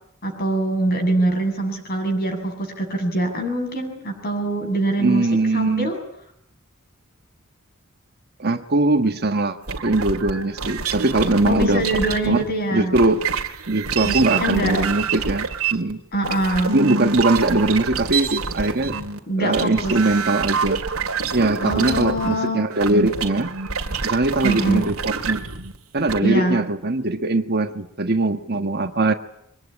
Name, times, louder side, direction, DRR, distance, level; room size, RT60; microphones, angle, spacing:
voice 1, 0.2-5.3 5.5-6.0 11.5-12.9 14.0-14.8 16.1-16.8 19.3-19.9 21.6-22.6 24.4-24.9 26.2-26.6, right 1 dB, 45° left, 5 dB, 7.3 m, -23 dB
voice 2, 5.0-5.9 8.4-9.6 9.8-11.9 12.2-12.4 12.7-13.2 13.7-16.0 16.7-19.0 19.4-20.8 21.3-23.5 24.0-25.4 25.9-29.1, right 2 dB, 50° right, 8 dB, 1.5 m, -21 dB
sound 1, 9.7-12.5 12.9-26.2, right 5 dB, 85° right, 2.1 m, -27 dB
24.0 x 19.5 x 10.0 m, 0.73 s
head